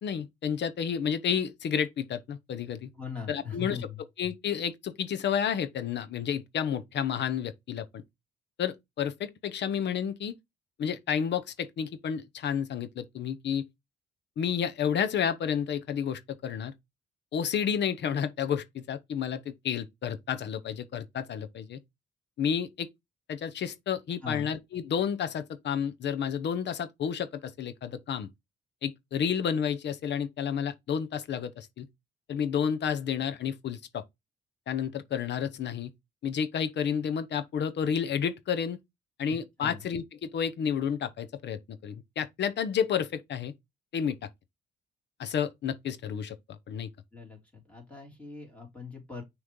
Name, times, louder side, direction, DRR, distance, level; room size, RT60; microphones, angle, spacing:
voice 1, 0.0-2.9 3.3-3.8 4.2-8.0 8.6-10.3 10.8-13.6 14.4-16.7 17.3-21.8 22.4-22.9 23.3-28.3 28.8-31.9 32.3-34.0 34.7-35.9 36.2-38.8 39.2-43.5 43.9-44.2 45.2-46.9, left 8 dB, 60° left, 0.8 m, -31 dB
voice 2, 2.9-4.0 24.2-24.5 39.6-39.8 47.1-49.2, left 6 dB, 5° left, 3.2 m, -40 dB
6.3 x 3.2 x 5.2 m
cardioid pair, 90°, 20 cm